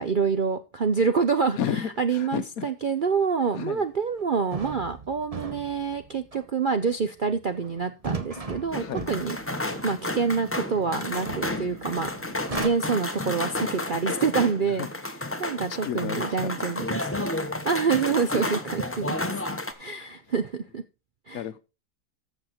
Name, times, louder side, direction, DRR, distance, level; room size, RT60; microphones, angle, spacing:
voice 1, 0.0-1.6 2.0-12.1 12.6-14.9 15.4-17.4 17.6-19.4 19.8-20.8 21.3-21.4, right 5 dB, 55° right, 0.6 m, -27 dB
voice 2, 1.6-2.7 3.5-3.8 8.8-9.1 14.6-14.9 15.7-16.5 21.3-21.6, left 9 dB, 65° left, 1.1 m, -32 dB
sound 1, 3.7-3.8 4.2-4.3 4.5-12.7, right 3 dB, 25° right, 1.0 m, -38 dB
sound 2, 8.7-19.7, left 1 dB, 10° left, 0.8 m, -31 dB
14.0 x 6.5 x 4.3 m
omnidirectional pair, 1.7 m